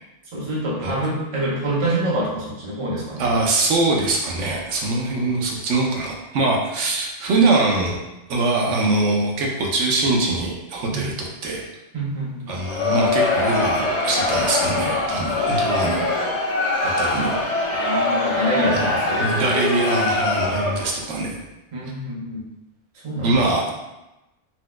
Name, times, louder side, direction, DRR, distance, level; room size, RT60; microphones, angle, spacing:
voice 1, 0.3-3.3 10.9-11.0 11.9-12.5 17.7-19.6 21.7-22.5 23.0-23.6, right 1 dB, 35° right, -5 dB, 0.7 m, -26 dB
voice 2, 3.2-8.0 8.3-11.7 12.5-16.1 16.8-17.4 18.7-18.9 19.2-21.4 23.2-23.7, right 2 dB, 85° right, -1 dB, 0.9 m, -22 dB
Crowd, 12.5-21.0, left 2 dB, 80° left, 0.9 m, -23 dB
4.2 x 2.2 x 2.2 m, 0.99 s
omnidirectional pair, 1.2 m